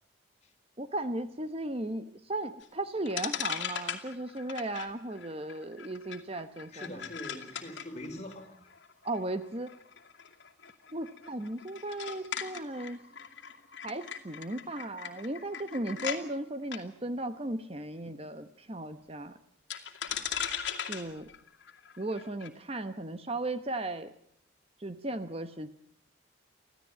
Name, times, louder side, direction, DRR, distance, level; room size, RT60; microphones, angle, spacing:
voice 1, 0.8-6.9 9.0-9.7 10.9-13.0 13.8-19.3 20.9-21.3 22.0-24.1 24.8-25.7, right 1 dB, 30° right, 1.0 m, -36 dB
sound 1, 2.6-2.7 3.0-16.2 16.6-16.8 19.7-22.5, left 8 dB, 65° left, 2.4 m, -39 dB
voice 2, 6.7-8.6, left 1 dB, 35° left, 3.6 m, -43 dB
25.5 x 15.5 x 8.8 m
head